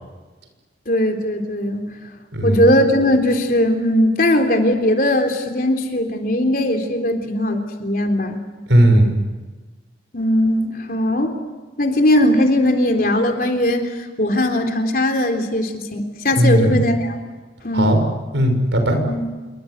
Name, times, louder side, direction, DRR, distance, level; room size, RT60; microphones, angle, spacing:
voice 1, 0.9-1.9 2.4-8.4 10.1-11.4 11.8-17.2 17.6-17.9 19.0-19.2, left 1 dB, 50° left, 4 dB, 3.7 m, -19 dB
voice 2, 2.3-2.7 8.7-9.1 16.4-16.8 17.7-18.0 18.3-19.0, right 1 dB, 90° right, 6 dB, 6.2 m, -16 dB
27.5 x 23.5 x 8.2 m, 1.3 s
head